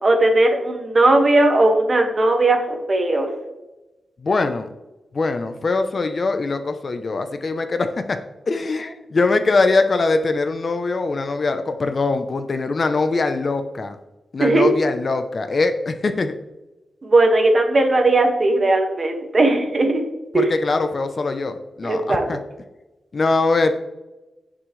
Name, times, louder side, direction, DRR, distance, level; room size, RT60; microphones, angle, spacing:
voice 1, 0.0-3.3 14.4-14.7 17.0-20.0 20.3-20.5 21.8-22.3, right 2 dB, 35° right, 3 dB, 1.8 m, -17 dB
voice 2, 4.2-4.7 5.1-8.2 8.5-14.0 14.3-16.4 20.3-22.4 23.1-23.7, left 3 dB, 40° left, 8 dB, 0.7 m, -22 dB
16.5 x 6.2 x 3.3 m, 1.0 s
wide cardioid pair, 165°, 0 cm